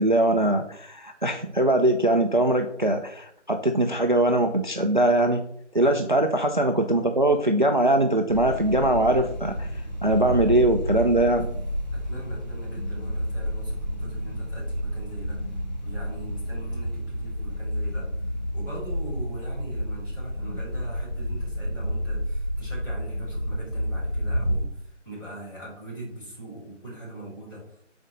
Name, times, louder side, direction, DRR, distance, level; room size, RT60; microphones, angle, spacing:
voice 1, 0.0-5.4 5.7-11.5, right 1 dB, 40° right, 5 dB, 0.4 m, -22 dB
sound 1, 8.3-24.6, equal, 35° left, 0.5 m, -30 dB
voice 2, 11.9-15.4 15.8-18.1 18.5-27.8, right 1 dB, 15° left, -9 dB, 2.7 m, -41 dB
6.1 x 4.3 x 5.1 m, 0.70 s
figure-of-eight pair, 165°, 37 cm